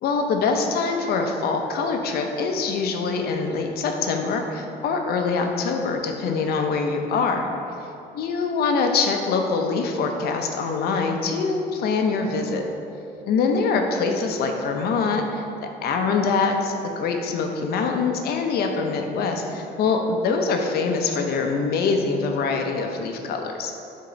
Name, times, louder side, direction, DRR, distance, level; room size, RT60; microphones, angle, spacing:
voice 1, 0.0-7.5 8.1-12.6 13.2-23.8, left 4 dB, 70° left, 4 dB, 0.7 m, -24 dB
6.7 x 3.7 x 3.9 m, 2.7 s
cardioid pair, 110°, 17 cm